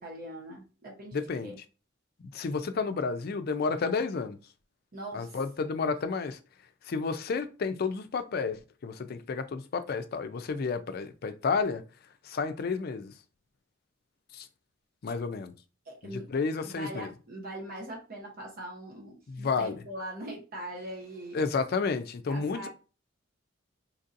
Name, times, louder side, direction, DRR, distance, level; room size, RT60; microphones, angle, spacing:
voice 1, 0.0-1.6 4.9-5.4 15.9-16.3 16.6-21.4 22.3-22.7, right 1 dB, 50° right, 0.8 m, -41 dB
voice 2, 1.1-1.5 2.3-4.4 5.1-6.4 6.9-11.8 12.3-13.1 14.3-14.5 15.0-15.5 16.0-17.1 19.3-19.8 21.3-22.7, left 4 dB, 50° left, 0.4 m, -31 dB
4.4 x 2.7 x 2.5 m
head